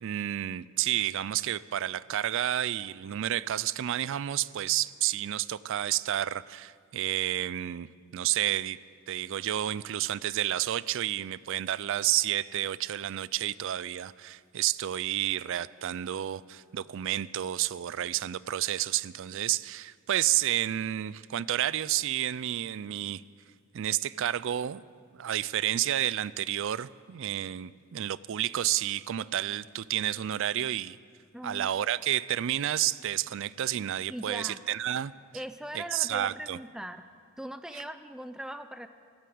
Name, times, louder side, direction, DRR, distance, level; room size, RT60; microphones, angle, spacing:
voice 1, 0.0-8.8 9.1-23.2 23.7-24.8 25.1-31.0 31.4-35.1 35.7-36.6 37.7-37.8, right 12 dB, 65° right, 19 dB, 0.4 m, -30 dB
voice 2, 31.3-31.7 34.1-34.6 35.3-37.1 37.4-38.9, equal, 5° right, 10 dB, 0.4 m, -40 dB
14.0 x 11.5 x 8.6 m, 2.1 s
head